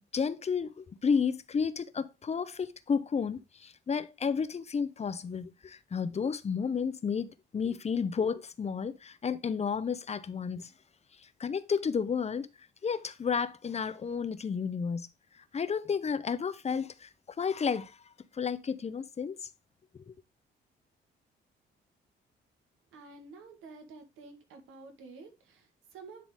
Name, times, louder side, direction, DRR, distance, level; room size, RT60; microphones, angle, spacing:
voice 1, 0.1-10.7 11.4-12.5 12.8-15.1 15.5-17.1 17.4-18.0 18.3-19.4 19.9-20.1, left 6 dB, 35° left, 0.7 m, -32 dB
voice 2, 22.9-26.3, right 4 dB, 90° right, 2.0 m, -50 dB
10.5 x 3.9 x 3.4 m
cardioid pair, 90°, 20 cm